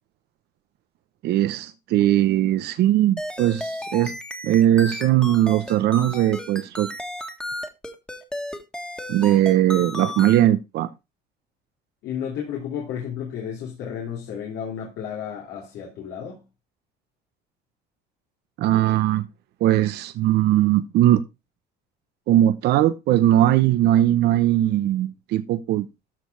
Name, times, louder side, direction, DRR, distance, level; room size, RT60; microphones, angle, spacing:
voice 1, 1.2-4.1 4.4-6.9 9.1-10.9 18.6-19.2 19.6-21.2 22.3-25.9, right 13 dB, 75° right, 0.8 m, -19 dB
sound 1, 3.2-10.4, left 1 dB, 5° left, 1.7 m, -33 dB
voice 2, 12.0-16.4, left 8 dB, 80° left, 2.8 m, -32 dB
13.5 x 4.6 x 4.6 m
cardioid pair, 110°, 17 cm